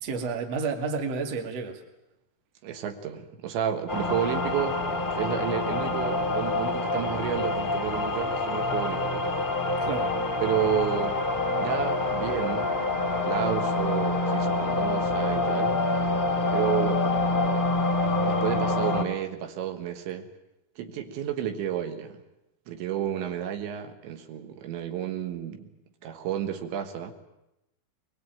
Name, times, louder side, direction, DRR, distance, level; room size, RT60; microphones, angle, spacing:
voice 1, 0.0-1.8 9.8-10.2, right 4 dB, 45° right, 4 dB, 2.6 m, -30 dB
voice 2, 2.6-4.8 5.0-9.2 10.4-11.2 11.6-12.7 13.1-15.8 16.5-17.1 18.3-20.3 20.8-22.2 22.7-25.7 26.0-27.1, right 9 dB, 80° right, 6 dB, 3.8 m, -31 dB
sound 1, 3.9-19.0, left 2 dB, 45° left, 0.6 m, -26 dB
22.0 x 21.5 x 9.1 m, 0.91 s
omnidirectional pair, 5.3 m